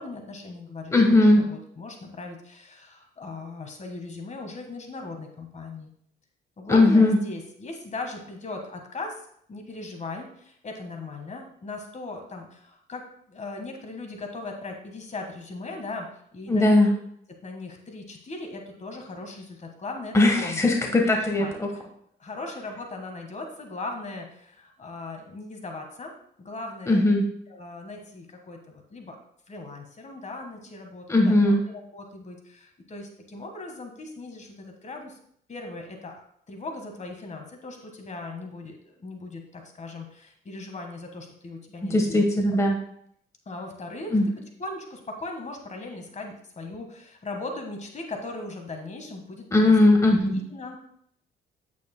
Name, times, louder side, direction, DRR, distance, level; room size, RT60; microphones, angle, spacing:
voice 1, 0.0-5.9 6.6-13.0 13.3-16.9 17.4-21.5 22.2-26.1 26.4-27.1 27.5-29.2 29.5-35.2 35.5-36.1 36.5-42.3 43.4-44.2 44.6-49.7 50.3-50.8, left 3 dB, 35° left, 3 dB, 1.5 m, -38 dB
voice 2, 0.9-1.4 6.7-7.2 16.5-16.9 20.1-21.7 26.9-27.2 31.1-31.6 41.8-42.8 44.1-44.3 49.5-50.4, left 2 dB, 15° left, 1 dB, 1.3 m, -19 dB
9.1 x 8.3 x 2.2 m, 0.67 s
cardioid pair, 90°, 20 cm